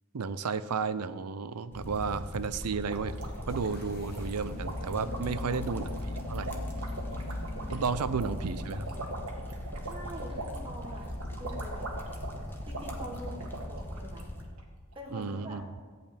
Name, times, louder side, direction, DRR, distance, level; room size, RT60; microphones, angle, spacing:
voice 1, 0.1-3.1 3.5-6.0 6.3-6.6 7.7-8.9 15.1-15.6, right 5 dB, 90° right, 14 dB, 0.6 m, -33 dB
sound 1, 1.7-14.4, left 1 dB, 10° left, 1.1 m, -42 dB
sound 2, 1.9-14.6 14.9-15.0 15.2-15.4, right 1 dB, 70° right, 1.8 m, -41 dB
sound 3, 3.5-9.4, left 2 dB, 45° left, 1.2 m, -40 dB
voice 2, 5.1-5.8 7.9-8.1 9.8-11.9 12.6-14.3 14.9-15.6, equal, 25° right, -1 dB, 1.6 m, -45 dB
14.0 x 5.3 x 8.8 m, 1.6 s
head